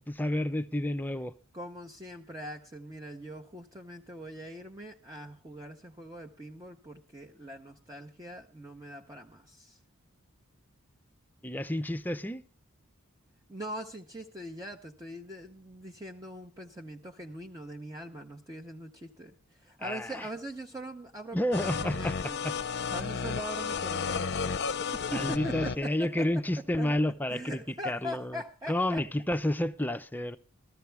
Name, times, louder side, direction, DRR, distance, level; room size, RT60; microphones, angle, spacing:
voice 1, 0.0-1.3 11.4-12.4 19.8-20.3 21.3-22.1 22.4-22.5 25.1-30.4, left 1 dB, 10° left, 0.5 m, -30 dB
voice 2, 1.5-9.8 13.5-22.4 22.9-24.3 24.9-26.3 26.6-27.0 27.3-29.0, right 1 dB, 15° right, 0.8 m, -42 dB
sound 1, 21.5-25.8, left 5 dB, 50° left, 0.6 m, -33 dB
14.0 x 14.0 x 3.4 m
head